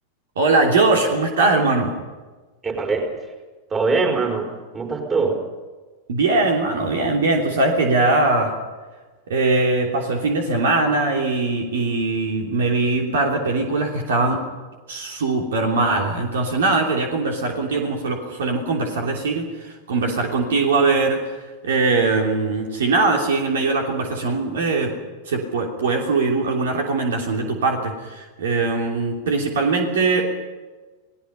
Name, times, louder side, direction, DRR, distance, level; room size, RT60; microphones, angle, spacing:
voice 1, 0.4-1.9 6.1-8.5 9.3-14.4 14.9-24.9 25.3-30.3, right 3 dB, 60° right, 2 dB, 3.1 m, -21 dB
voice 2, 2.6-3.2 3.7-5.4, right 4 dB, 20° right, 3 dB, 5.1 m, -22 dB
29.5 x 19.0 x 5.6 m, 1.3 s
figure-of-eight pair, 90°, 0 cm